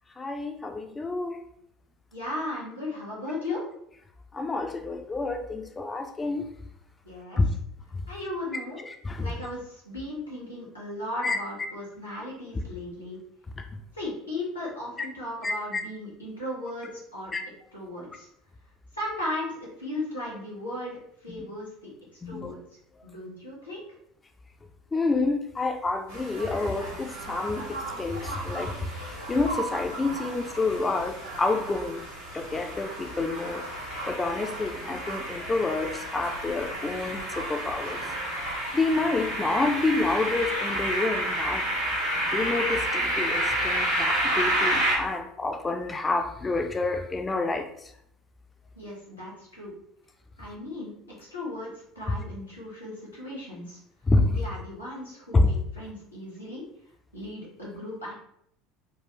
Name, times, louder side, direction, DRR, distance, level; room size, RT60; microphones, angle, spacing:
voice 1, 0.2-1.4 4.3-6.4 7.4-7.5 8.9-9.3 11.2-11.4 15.0-15.1 15.4-15.8 17.3-17.4 21.3-21.4 22.2-22.5 24.9-27.6 28.0-28.7 29.0-32.0 32.3-33.6 34.1-38.0 38.7-41.6 42.3-47.7 54.1-54.3 55.3-55.5, left 3 dB, 20° left, 5 dB, 0.5 m, -28 dB
voice 2, 2.1-3.6 7.0-7.4 8.1-8.8 9.2-13.2 13.9-17.3 17.7-18.3 18.9-22.6 23.0-23.9 48.7-49.7 50.4-50.9 51.2-53.8 54.3-56.7 57.1-58.1, left 1 dB, 90° left, -7 dB, 1.3 m, -36 dB
sound 1, 26.1-45.0, right 1 dB, 85° right, 1.4 m, -31 dB
3.7 x 2.3 x 3.0 m, 0.71 s
figure-of-eight pair, 65°, 0 cm